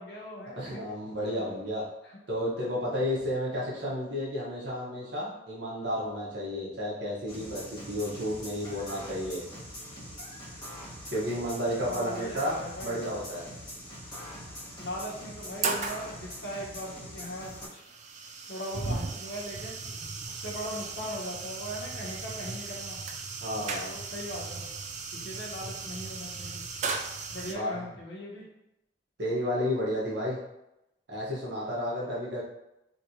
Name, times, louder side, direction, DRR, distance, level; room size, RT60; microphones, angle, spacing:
voice 1, 0.0-0.8 11.8-13.0 14.8-17.8 18.5-19.8 20.3-23.0 23.8-24.7 25.1-26.6 27.3-28.4, equal, 70° left, -4 dB, 1.0 m, -39 dB
voice 2, 0.5-1.8 2.3-9.4 11.1-13.4 23.4-23.9 27.5-27.9 29.2-30.4 31.1-32.4, equal, 70° right, -6 dB, 1.2 m, -32 dB
sound 1, 7.3-17.7, equal, 25° left, 1.3 m, -43 dB
sound 2, 12.7-12.8 14.0-14.1 14.6-14.7 15.2-16.1 17.1-27.5, right 4 dB, 40° right, 0.3 m, -36 dB
3.1 x 3.1 x 2.7 m, 0.88 s
head